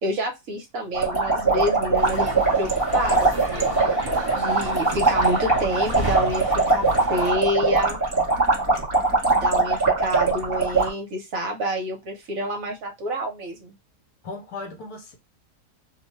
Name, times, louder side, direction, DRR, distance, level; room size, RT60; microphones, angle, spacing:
voice 1, 0.0-3.7 4.3-8.0 9.3-13.7, equal, 60° right, 1.0 m, -28 dB
sound 1, 0.9-10.9, right 3 dB, 40° right, 1.4 m, -22 dB
sound 2, 2.0-7.4, right 1 dB, 20° right, 0.8 m, -32 dB
voice 2, 14.2-15.1, left 3 dB, 70° left, 1.2 m, -37 dB
2.8 x 2.2 x 3.0 m
omnidirectional pair, 1.8 m